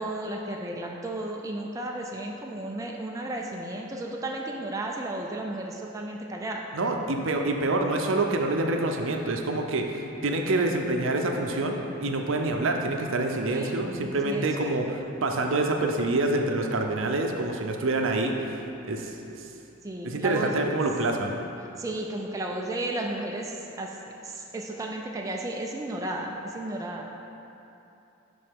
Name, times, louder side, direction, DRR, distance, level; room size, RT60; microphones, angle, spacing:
voice 1, 0.0-6.7 13.5-13.7 14.0-14.5 14.9-15.0 19.8-20.5 21.8-23.9 24.2-27.1, right 1 dB, 15° right, 0 dB, 0.3 m, -33 dB
voice 2, 6.7-9.9 10.2-18.4 18.9-19.1 20.0-21.3, right 2 dB, 70° right, 3 dB, 0.6 m, -26 dB
11.0 x 3.8 x 3.6 m, 2.8 s
head